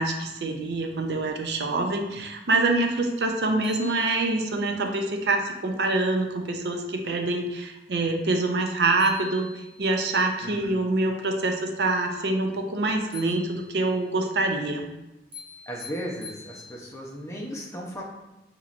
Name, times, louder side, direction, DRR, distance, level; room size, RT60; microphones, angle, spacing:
voice 1, 0.0-14.9, right 2 dB, 70° right, 4 dB, 0.5 m, -25 dB
sound 1, 3.2-3.3 3.6-4.7 8.6-8.7 9.0-10.1 13.1-14.0 15.3-17.1, left 4 dB, 30° right, 0.9 m, -45 dB
voice 2, 10.4-10.8 15.7-18.0, equal, 15° left, -2 dB, 0.6 m, -36 dB
5.6 x 3.0 x 2.5 m, 0.95 s
head